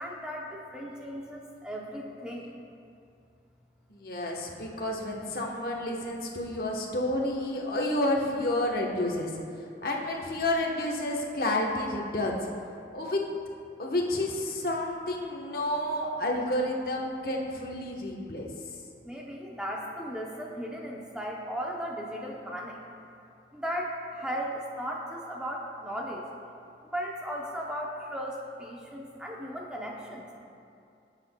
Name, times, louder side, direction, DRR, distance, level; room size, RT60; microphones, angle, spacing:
voice 1, 0.0-2.5 18.6-18.7 19.0-22.8 23.5-26.2 26.9-30.3, equal, 5° right, -2 dB, 0.6 m, -36 dB
voice 2, 3.9-9.3 9.8-12.5 12.9-13.2 13.8-18.5, left 1 dB, 55° left, -1 dB, 1.0 m, -30 dB
15.5 x 7.4 x 2.2 m, 2.5 s
head